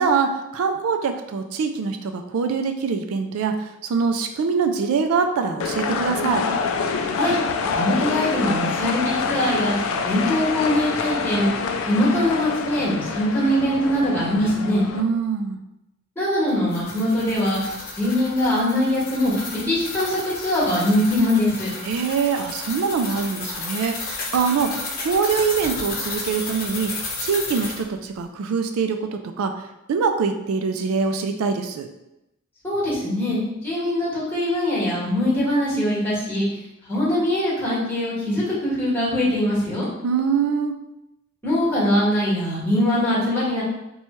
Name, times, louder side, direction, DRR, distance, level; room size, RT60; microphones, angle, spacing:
voice 1, 0.0-6.4 14.9-15.6 21.8-29.5 29.9-31.9 40.0-40.8, right 5 dB, 80° right, 6 dB, 0.3 m, -24 dB
sound 1, 5.6-15.0, left 5 dB, 65° left, 0.3 m, -26 dB
voice 2, 7.7-11.5 11.9-14.8 16.1-21.7 32.6-36.4 36.9-39.9 41.4-43.6, left 1 dB, 10° left, -7 dB, 1.4 m, -22 dB
sound 2, 16.5-27.8, left 3 dB, 45° left, 0.8 m, -33 dB
3.0 x 2.3 x 4.2 m, 0.90 s
head